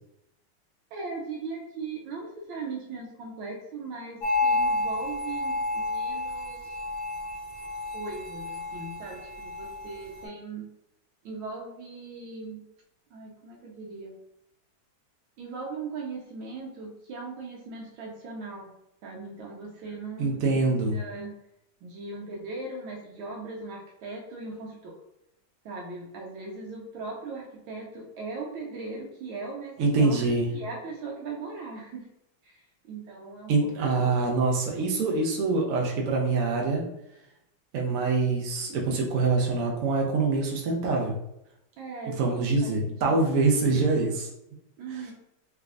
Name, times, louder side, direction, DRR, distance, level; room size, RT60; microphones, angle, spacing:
voice 1, 0.9-6.8 7.9-10.7 11.2-12.6 13.1-14.1 15.4-18.7 19.0-21.4 21.8-25.0 25.6-32.1 32.4-33.5 33.8-34.0 41.8-43.2 44.8-45.1, right 3 dB, 90° right, -1 dB, 1.4 m, -39 dB
sound 1, 4.2-10.2, left 2 dB, 45° left, 1.0 m, -30 dB
voice 2, 20.2-21.0 29.8-30.5 33.5-36.9 37.7-41.2 42.1-44.3, right 3 dB, 70° right, -1 dB, 0.8 m, -25 dB
3.5 x 3.3 x 2.4 m, 0.82 s
omnidirectional pair, 2.1 m